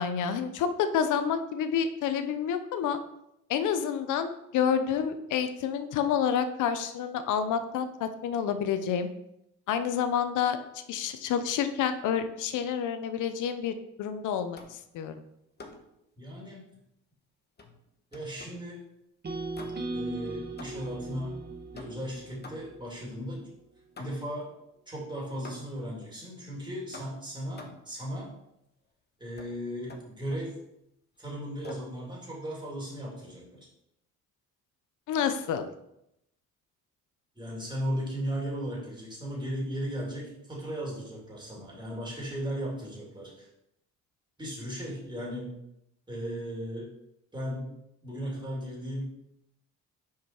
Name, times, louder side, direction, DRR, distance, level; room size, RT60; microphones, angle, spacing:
voice 1, 0.0-3.0 3.5-9.1 9.7-10.6 10.9-15.1 35.1-35.7, left 8 dB, 80° left, 9 dB, 0.7 m, -29 dB
sound 1, 14.5-14.9 15.6-16.0 17.6-18.7 19.5-20.1 20.6-21.0 21.7-22.9 24.0-24.4 25.4-25.9 26.9-27.9 29.4-29.5 29.9-30.5 31.6-32.0, left 3 dB, 35° left, 1.1 m, -48 dB
voice 2, 16.2-16.7 18.1-18.8 19.9-21.3 21.7-23.4 24.0-24.5 24.9-28.3 29.2-30.6 31.2-33.7 37.4-43.5 44.4-45.5 46.1-46.9 47.3-47.7 48.0-49.1, equal, 15° right, -4 dB, 2.7 m, -36 dB
sound 2, 19.2-23.4, right 2 dB, 35° right, 1.2 m, -38 dB
5.8 x 4.8 x 4.4 m, 0.80 s
cardioid pair, 90°, 30 cm